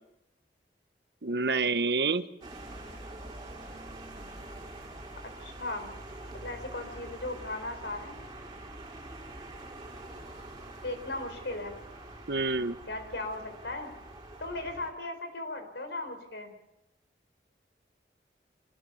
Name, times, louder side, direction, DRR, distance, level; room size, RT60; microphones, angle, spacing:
voice 1, 1.2-2.2 12.3-12.8, right 3 dB, 75° right, 12 dB, 1.0 m, -27 dB
sound 1, 2.4-14.9, right 1 dB, 25° right, 5.3 m, -45 dB
voice 2, 5.4-5.9 6.3-8.2 10.8-11.7 12.9-13.9 14.4-16.5, left 2 dB, 85° left, 7 dB, 4.8 m, -37 dB
25.5 x 20.5 x 7.2 m, 0.88 s
head